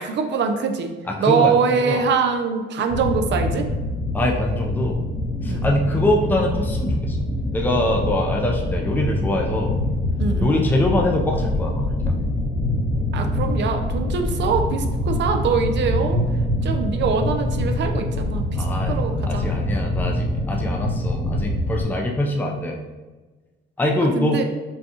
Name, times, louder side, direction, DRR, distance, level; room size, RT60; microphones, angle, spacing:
voice 1, 0.0-0.9 1.2-3.7 5.4-5.7 10.2-10.6 13.1-16.2 16.6-19.4 24.2-24.4, right 5 dB, 65° right, 5 dB, 0.5 m, -23 dB
voice 2, 1.1-2.0 4.1-5.0 5.4-7.3 7.5-9.8 10.4-12.1 18.6-19.0 19.3-22.8 23.8-24.4, left 1 dB, 10° left, 0 dB, 0.5 m, -23 dB
sound 1, 2.9-21.8, left 1 dB, 50° left, 1.0 m, -24 dB
5.2 x 2.3 x 2.8 m, 1.3 s
cardioid pair, 90°, 20 cm